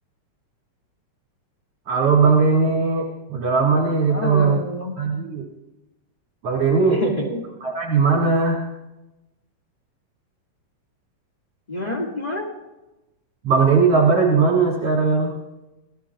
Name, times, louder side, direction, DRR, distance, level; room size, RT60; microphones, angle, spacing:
voice 1, 1.9-4.6 5.0-5.4 6.4-7.0 7.6-8.6 13.4-15.3, right 4 dB, 50° right, -3 dB, 3.2 m, -18 dB
voice 2, 4.1-4.9 6.9-7.5 11.7-12.5, left 1 dB, 15° left, -1 dB, 1.5 m, -27 dB
27.5 x 18.0 x 2.4 m, 1.0 s
omnidirectional pair, 3.8 m